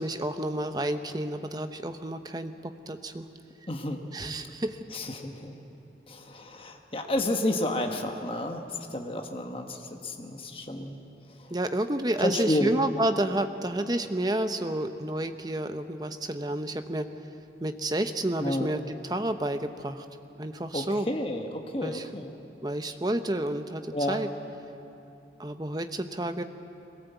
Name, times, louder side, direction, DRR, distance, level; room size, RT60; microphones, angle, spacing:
voice 1, 0.0-3.3 4.1-4.8 11.5-17.1 17.6-20.0 20.4-21.1 21.8-22.1 22.6-24.3 25.4-26.4, right 1 dB, 20° right, 8 dB, 0.8 m, -30 dB
voice 2, 3.7-4.0 4.9-5.5 6.1-11.0 11.4-11.5 12.2-12.7 18.4-18.7 20.7-22.3 23.9-24.2, left 1 dB, 30° left, 3 dB, 1.2 m, -31 dB
21.5 x 17.5 x 8.2 m, 2.8 s
head